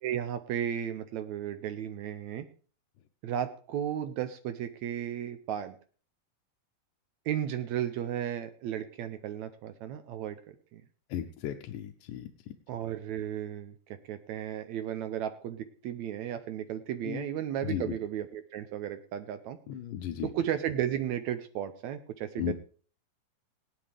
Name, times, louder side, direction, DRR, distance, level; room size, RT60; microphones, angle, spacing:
voice 1, 0.0-2.5 3.2-5.8 7.3-10.4 10.7-10.8 12.7-13.7 14.1-19.6 20.2-22.5, right 10 dB, 75° right, 10 dB, 1.7 m, -34 dB
voice 2, 11.1-12.3 17.1-17.2 17.7-17.8 19.7-20.3 22.4-22.5, left 10 dB, 80° left, 6 dB, 2.2 m, -35 dB
18.0 x 11.0 x 3.4 m, 0.41 s
omnidirectional pair, 3.9 m